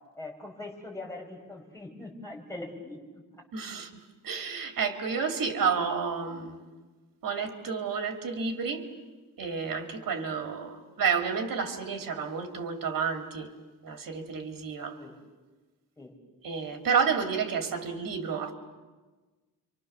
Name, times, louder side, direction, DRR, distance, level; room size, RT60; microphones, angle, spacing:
voice 1, 0.1-3.2 15.0-15.2 16.0-16.2, left 2 dB, 10° left, 0 dB, 5.8 m, -42 dB
voice 2, 3.5-3.9 4.2-6.7 7.2-8.9 9.4-13.5 13.8-15.0 16.4-18.5, right 6 dB, 75° right, 5 dB, 2.8 m, -30 dB
30.0 x 25.0 x 7.0 m, 1.3 s
wide cardioid pair, 130°, 34 cm